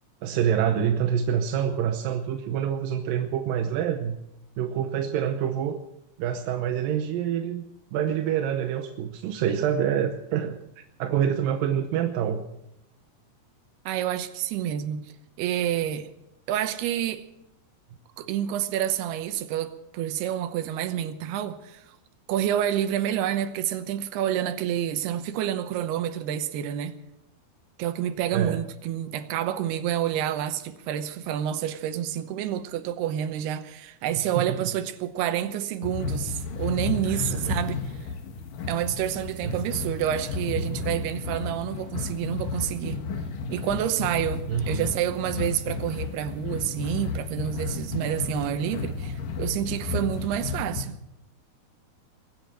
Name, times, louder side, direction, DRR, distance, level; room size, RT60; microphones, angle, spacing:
voice 1, 0.2-4.2 4.6-5.8 6.2-7.6 7.9-10.6 11.0-12.4 28.3-28.6 34.2-34.7 37.1-37.6 39.4-39.7 44.5-44.9, right 9 dB, 75° right, 2.4 m, -26 dB
voice 2, 13.9-16.1 16.5-17.3 18.2-22.0 22.3-27.0 27.8-38.1 38.7-43.1 43.5-51.0, right 10 dB, 90° right, 3.0 m, -28 dB
sound 1, 35.8-50.8, left 4 dB, 65° left, 2.8 m, -32 dB
22.0 x 8.8 x 7.5 m
omnidirectional pair, 4.5 m